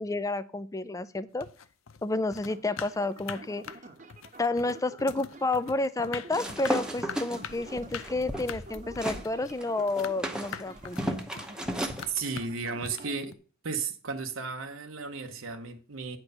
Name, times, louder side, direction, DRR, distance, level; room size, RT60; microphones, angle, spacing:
voice 1, 0.0-1.5 2.0-3.7 4.4-11.2, left 2 dB, 15° left, 0.4 m, -30 dB
sound 1, 1.3-13.3, left 7 dB, 80° left, 0.6 m, -43 dB
sound 2, 2.5-13.1, right 2 dB, 40° right, 1.0 m, -49 dB
sound 3, 6.3-9.3 9.6-12.0, equal, 5° right, 0.9 m, -34 dB
voice 2, 12.1-13.4 13.6-16.2, right 5 dB, 70° right, 0.9 m, -34 dB
9.6 x 4.5 x 6.5 m
head